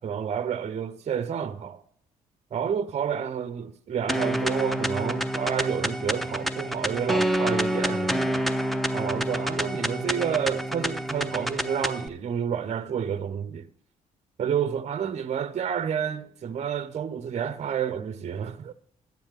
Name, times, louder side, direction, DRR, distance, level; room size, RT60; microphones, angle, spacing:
voice 1, 0.0-1.8 2.5-8.5 8.9-13.7 14.4-18.7, right 8 dB, 40° right, 0.6 m, -30 dB
sound 1, 4.1-12.1, equal, ahead, 0.8 m, -28 dB
11.5 x 10.0 x 3.4 m
hypercardioid pair, 45°, 18 cm